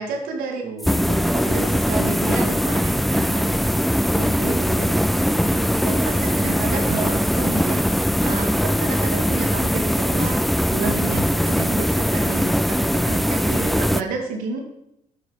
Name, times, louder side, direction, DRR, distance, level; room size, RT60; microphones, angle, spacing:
voice 1, 0.0-0.6 1.1-5.4 5.7-13.4 13.8-14.6, right 4 dB, 85° right, 1 dB, 2.3 m, -31 dB
voice 2, 0.6-1.2 2.8-3.9 5.4-5.8 6.1-6.5 6.8-7.2 8.4-8.5 11.1-11.4 13.4-13.9, right 4 dB, 65° right, 0 dB, 2.0 m, -35 dB
sound 1, 0.8-14.0, equal, ahead, 0.3 m, -21 dB
9.1 x 8.0 x 5.2 m, 0.81 s
cardioid pair, 105°, 14 cm